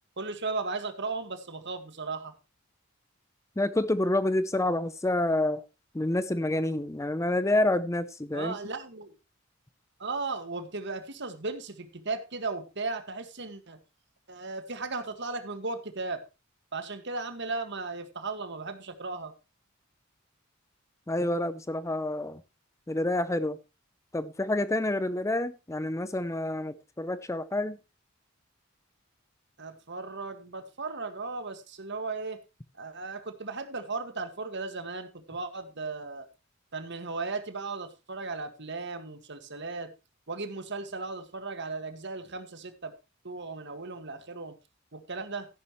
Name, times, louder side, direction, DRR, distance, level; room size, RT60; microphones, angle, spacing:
voice 1, 0.2-2.3 8.3-9.1 10.0-13.8 14.3-16.2 16.7-19.3 29.6-32.4 32.8-36.3 36.7-39.9 40.3-42.9 43.2-44.6 44.9-45.5, right 3 dB, 55° right, 1.8 m, -36 dB
voice 2, 3.6-5.6 5.9-8.6 21.1-22.4 22.9-23.6 24.1-27.8, left 1 dB, 15° left, 0.5 m, -28 dB
14.0 x 11.0 x 3.1 m
head